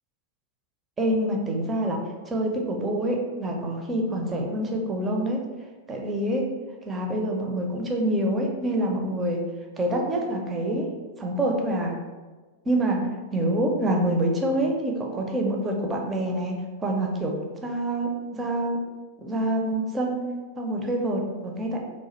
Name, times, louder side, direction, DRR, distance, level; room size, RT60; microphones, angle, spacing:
voice 1, 1.0-5.4 5.9-6.5 6.8-9.5 9.8-10.9 11.2-12.0 12.7-13.0 13.3-16.5 16.8-18.8 19.2-21.8, right 1 dB, 20° right, 1 dB, 0.4 m, -26 dB
2.2 x 2.0 x 2.8 m, 1.3 s
figure-of-eight pair, 90°, 0 cm